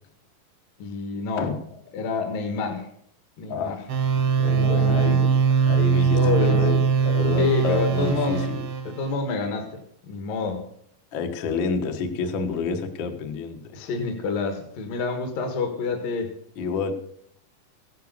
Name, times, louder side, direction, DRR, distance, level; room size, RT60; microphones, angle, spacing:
voice 1, 0.8-1.5 1.9-2.9 3.4-3.8 4.5-5.3 6.1-6.7 7.4-8.4 8.9-9.8 10.1-10.6 13.7-16.3, left 4 dB, 70° left, 4 dB, 3.2 m, -28 dB
voice 2, 3.5-3.9 4.1-5.3 5.7-9.0 11.1-13.6 16.6-16.9, left 5 dB, 50° left, 6 dB, 1.4 m, -29 dB
sound 1, 3.9-9.1, right 6 dB, 50° right, 1.7 m, -21 dB
15.5 x 10.5 x 6.7 m, 0.66 s
omnidirectional pair, 4.2 m